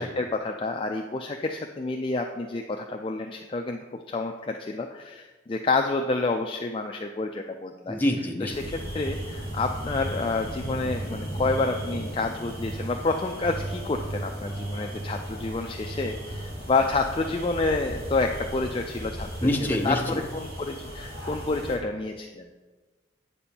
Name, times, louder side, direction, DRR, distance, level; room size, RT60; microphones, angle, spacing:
voice 1, 0.0-8.0 8.4-22.5, left 3 dB, 25° left, 3 dB, 0.3 m, -29 dB
voice 2, 7.9-8.5 19.4-20.2, left 1 dB, 10° left, 1 dB, 0.8 m, -26 dB
sound 1, 8.5-21.8, equal, 55° right, 2.7 m, -38 dB
sound 2, 8.9-10.2 10.7-12.1 12.6-12.9 13.4-15.5 15.8-16.4, right 2 dB, 30° right, 1.0 m, -35 dB
8.5 x 4.3 x 7.0 m, 1.3 s
head